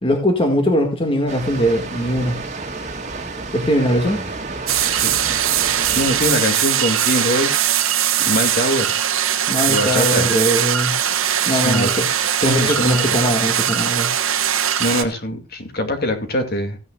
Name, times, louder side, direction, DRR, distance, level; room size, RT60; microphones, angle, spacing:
voice 1, 0.0-2.4 3.5-4.2 9.5-10.9 11.5-12.0 12.4-14.1, equal, 25° left, 1.9 m, -20 dB
Water, 1.3-6.3, right 3 dB, 35° right, 2.0 m, -31 dB
sound 1, 4.7-15.0, right 10 dB, 70° right, 1.3 m, -20 dB
voice 2, 5.9-7.6 8.2-9.0 9.7-10.3 11.5-12.0 12.5-13.2 14.8-16.8, left 1 dB, 45° left, 2.4 m, -23 dB
16.0 x 9.8 x 2.4 m
head